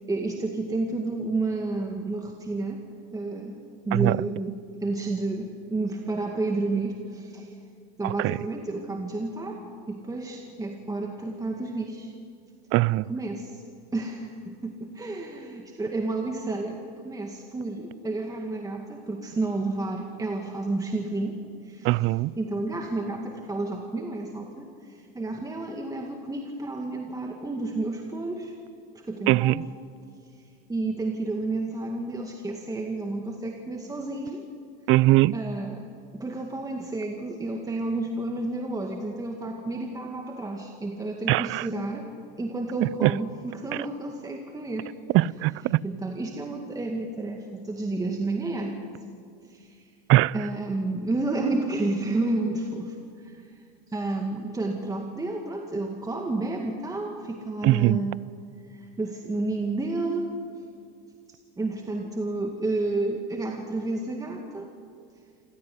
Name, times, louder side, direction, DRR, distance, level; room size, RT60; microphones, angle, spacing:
voice 1, 0.1-2.8 3.1-7.5 8.0-9.6 9.9-12.1 13.1-13.6 13.9-22.0 22.4-28.5 28.9-29.6 30.7-34.5 35.3-35.8 36.1-42.1 42.4-44.9 45.8-48.8 49.5-49.9 50.3-53.5 53.9-58.2 58.7-60.3 61.6-64.7, right 2 dB, 10° right, 2.1 m, -31 dB
voice 2, 8.0-8.4 12.7-13.1 21.8-22.3 29.3-29.6 34.9-35.4 41.3-41.7 42.8-43.1 45.1-45.8 50.1-50.3 57.6-58.0, right 18 dB, 45° right, 0.5 m, -21 dB
27.0 x 16.5 x 9.7 m
supercardioid pair, 110°, 31 cm